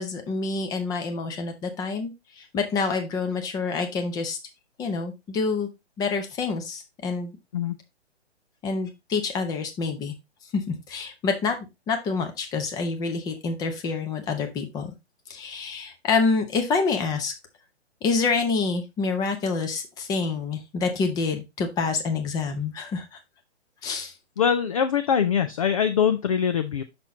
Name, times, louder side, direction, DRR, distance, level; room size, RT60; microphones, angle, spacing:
voice 1, 0.0-4.4 4.8-5.7 6.0-7.3 8.6-10.1 10.5-11.6 11.9-14.9 15.3-17.3 18.0-23.2 23.8-24.1, left 4 dB, 10° left, 6 dB, 0.8 m, -27 dB
voice 2, 24.4-26.8, left 7 dB, 30° left, 9 dB, 0.4 m, -23 dB
5.9 x 5.9 x 3.7 m, 0.23 s
figure-of-eight pair, 135°, 34 cm